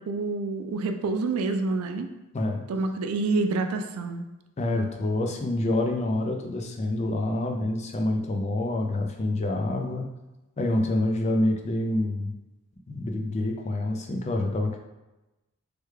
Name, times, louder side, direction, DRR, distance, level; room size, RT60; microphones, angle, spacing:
voice 1, 0.0-2.1 2.7-4.2, right 3 dB, 85° right, 7 dB, 0.4 m, -27 dB
voice 2, 2.3-2.7 4.6-10.1 10.6-12.3 12.9-14.8, left 1 dB, 30° left, 3 dB, 0.4 m, -27 dB
3.3 x 2.2 x 3.1 m, 1.0 s
head